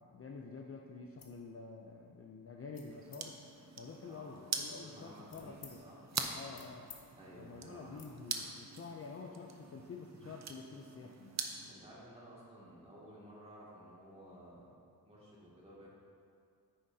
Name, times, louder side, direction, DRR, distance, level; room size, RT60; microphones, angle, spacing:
voice 1, 0.0-3.4 3.8-5.8 6.3-6.9 7.4-11.4, left 4 dB, 40° left, 1 dB, 0.4 m, -48 dB
sound 1, 1.2-1.4 1.9-2.2 2.7-3.2 3.9-5.8 6.2-7.0 7.3-7.5 7.9-8.1, left 5 dB, 60° left, 1.1 m, -57 dB
sound 2, 2.9-11.7, right 5 dB, 45° right, 0.6 m, -44 dB
voice 2, 4.1-6.1 7.1-8.0 11.7-14.7 15.0-15.9, equal, 15° right, -7 dB, 2.1 m, -55 dB
9.8 x 9.4 x 2.7 m, 2.4 s
wide cardioid pair, 165°, 39 cm